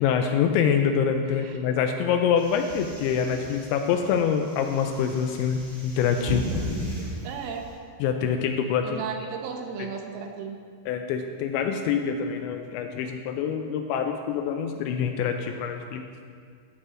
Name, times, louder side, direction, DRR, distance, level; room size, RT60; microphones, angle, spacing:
voice 1, 0.0-6.5 8.0-9.0 9.8-9.9 10.9-16.0, left 7 dB, 85° left, 5 dB, 2.7 m, -25 dB
sound 1, 2.4-7.7, equal, 35° right, 0.7 m, -36 dB
voice 2, 7.0-7.6 8.8-10.6, right 6 dB, 80° right, 3 dB, 3.4 m, -35 dB
15.0 x 7.7 x 3.7 m, 2.2 s
omnidirectional pair, 5.5 m